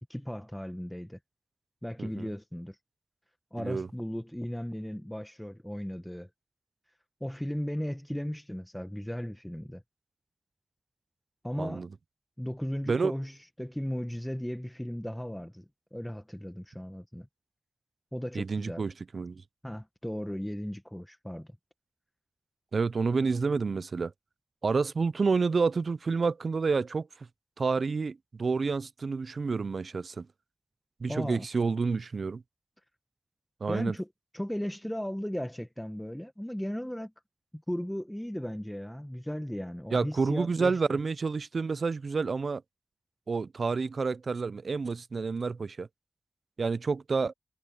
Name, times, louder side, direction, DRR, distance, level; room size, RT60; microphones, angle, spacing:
voice 1, 0.1-1.2 1.8-2.8 3.5-6.3 7.2-9.8 11.4-11.9 12.4-15.6 15.9-17.3 18.1-18.8 19.6-21.5 31.1-31.5 33.7-34.1 34.3-37.1 37.5-41.0, equal, 5° left, 1.4 m, -36 dB
voice 2, 2.0-2.3 3.6-3.9 11.6-11.9 12.9-13.1 18.3-19.4 22.7-24.1 24.6-27.1 27.6-30.3 31.0-32.4 33.6-33.9 39.9-42.6 43.3-45.9 46.6-47.3, right 4 dB, 75° right, 0.4 m, -29 dB
cardioid pair, 45°, 0 cm